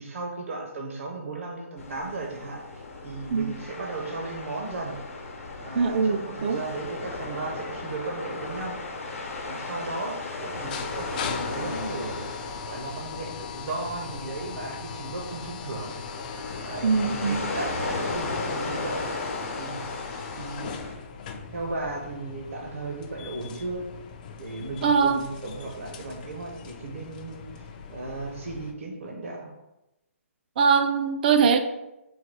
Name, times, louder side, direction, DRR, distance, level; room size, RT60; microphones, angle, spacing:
voice 1, 0.0-5.0 5.6-8.8 9.5-12.3 12.6-15.9 16.6-19.1 19.6-19.9 20.3-20.7 21.5-23.9 24.4-29.5, right 3 dB, 65° right, 1 dB, 0.8 m, -36 dB
sound 1, 1.8-20.9, left 3 dB, 70° left, 0.8 m, -36 dB
voice 2, 5.7-6.6 16.8-17.5 24.8-25.2 30.6-31.6, right 5 dB, 40° right, 8 dB, 0.4 m, -22 dB
sound 2, 10.5-28.7, left 6 dB, 35° left, 0.4 m, -40 dB
3.8 x 2.3 x 4.5 m, 0.94 s
hypercardioid pair, 155°, 8 cm